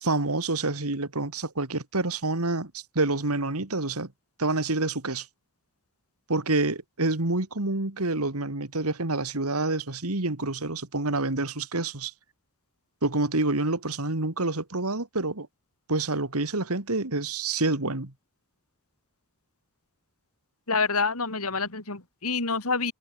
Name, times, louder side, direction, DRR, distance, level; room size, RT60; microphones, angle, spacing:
voice 1, 0.0-4.1 4.4-5.3 6.3-12.1 13.0-15.5 15.9-18.1, right 2 dB, 85° right, 2.6 m, -27 dB
voice 2, 20.7-22.9, left 4 dB, 80° left, 4.4 m, -27 dB
head